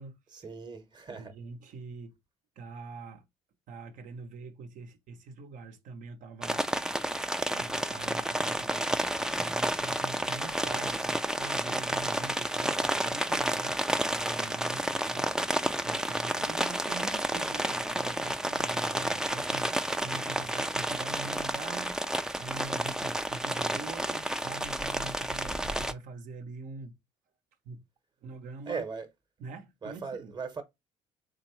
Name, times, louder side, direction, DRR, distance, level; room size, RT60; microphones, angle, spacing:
voice 1, 0.3-1.3 28.7-29.1 29.8-30.6, right 5 dB, 30° right, 1.0 m, -38 dB
voice 2, 1.1-2.2 2.6-3.3 3.7-6.7 7.2-27.0 27.6-27.9 28.2-28.8 29.4-30.4, right 4 dB, 60° right, 0.8 m, -44 dB
sound 1, 6.4-25.9, right 1 dB, 5° right, 0.4 m, -31 dB
3.8 x 3.3 x 3.1 m
hypercardioid pair, 60°, 15 cm